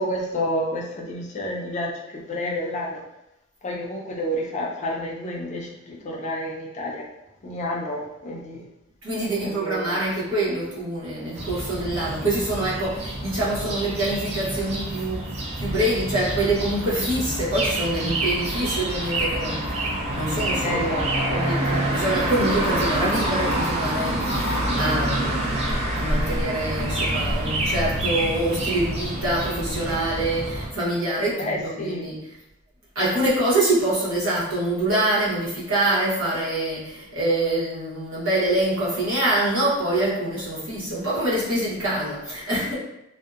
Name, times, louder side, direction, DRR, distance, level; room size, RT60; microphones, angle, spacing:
voice 1, 0.0-3.0 3.6-7.0 7.4-8.6 9.4-10.0 20.6-21.3 31.4-32.0, left 1 dB, 35° left, -2 dB, 0.5 m, -29 dB
voice 2, 9.0-15.3 15.6-25.7 25.9-32.3 32.9-42.8, right 1 dB, 85° right, -8 dB, 1.0 m, -25 dB
sound 1, 11.3-30.7, right 1 dB, 30° right, 0.4 m, -27 dB
2.6 x 2.1 x 2.4 m, 0.88 s
head